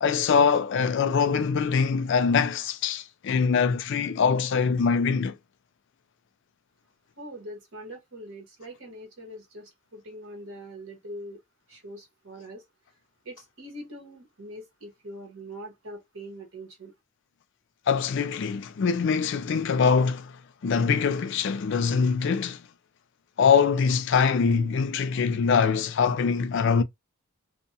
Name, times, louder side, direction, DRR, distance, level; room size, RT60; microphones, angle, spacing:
voice 1, 0.0-5.4 17.9-20.3 20.6-22.6 23.4-26.8, left 6 dB, 55° left, 0.3 m, -23 dB
voice 2, 7.2-11.4 11.7-12.6 13.2-16.9, right 1 dB, 65° right, 1.2 m, -42 dB
2.6 x 2.1 x 2.6 m
head